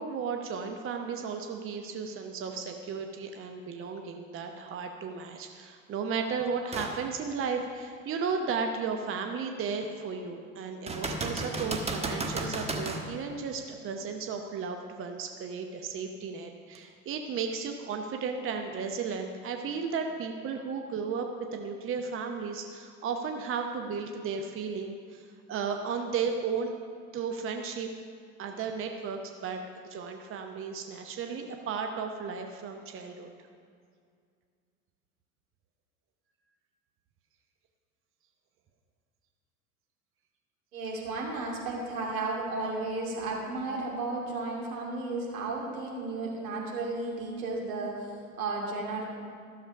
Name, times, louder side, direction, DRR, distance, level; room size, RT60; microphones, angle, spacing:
voice 1, 0.0-26.7 27.1-27.9 28.4-33.3, right 5 dB, 30° right, 4 dB, 0.8 m, -34 dB
sound 1, 6.7-7.0 7.6-7.7 10.9-13.1 16.7-16.8, right 2 dB, 15° right, 1.2 m, -33 dB
voice 2, 40.7-49.0, right 3 dB, 75° right, -2 dB, 2.6 m, -34 dB
14.0 x 6.9 x 5.4 m, 2.2 s
figure-of-eight pair, 70°, 43 cm